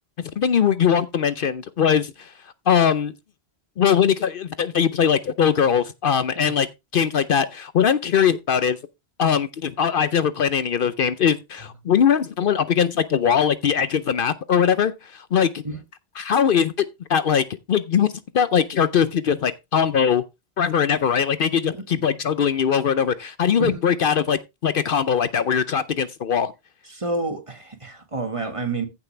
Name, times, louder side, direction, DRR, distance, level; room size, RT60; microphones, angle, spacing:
voice 1, 0.2-2.3 2.7-3.1 3.8-6.7 6.9-8.8 9.2-15.6 16.2-16.7 17.1-20.2 20.6-26.5, left 7 dB, 60° left, 0.8 m, -21 dB
voice 2, 26.9-28.9, right 3 dB, 30° right, 1.7 m, -28 dB
15.0 x 5.9 x 3.2 m
omnidirectional pair, 1.1 m